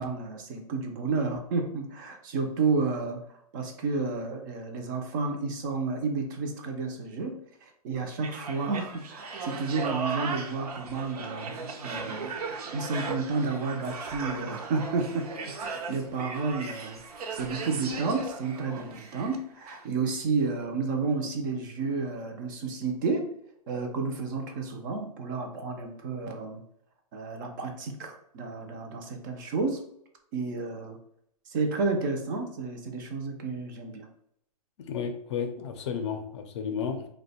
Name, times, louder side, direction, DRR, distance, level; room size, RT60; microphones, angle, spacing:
voice 1, 0.0-15.3 15.6-17.0 17.3-23.3 23.7-26.6 27.1-29.8 30.3-31.0 31.5-34.1, right 4 dB, 30° right, 4 dB, 0.5 m, -31 dB
sound 1, 8.2-19.4 19.7-19.8, right 4 dB, 75° right, 0.6 m, -37 dB
voice 2, 34.9-37.1, left 6 dB, 45° left, 6 dB, 0.5 m, -32 dB
2.7 x 2.2 x 4.0 m, 0.72 s
hypercardioid pair, 150°, 20 cm